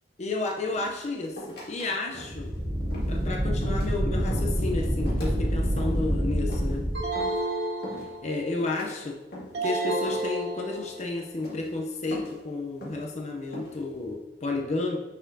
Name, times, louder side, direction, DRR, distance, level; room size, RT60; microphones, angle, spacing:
voice 1, 0.2-2.5 3.1-6.9 8.2-9.2 9.6-15.0, left 3 dB, 40° left, 0 dB, 0.6 m, -32 dB
sound 1, 0.7-1.9 2.1-2.5 2.9-3.2 3.6-4.0 4.3-4.6 5.1-5.4 5.8-6.1 6.5-6.8 7.1-7.4 7.8-8.3 8.6-9.0 9.3-9.7 10.1-10.4 10.7-11.1 11.4-11.7 12.1-12.4 12.8-13.1 13.5-13.8, left 1 dB, 65° left, 2.0 m, -41 dB
sound 2, 2.1-7.0, equal, 30° right, 0.7 m, -27 dB
sound 3, 6.9-8.5 9.5-11.1, right 2 dB, 75° right, 1.5 m, -31 dB
9.8 x 4.2 x 2.7 m, 1.1 s
head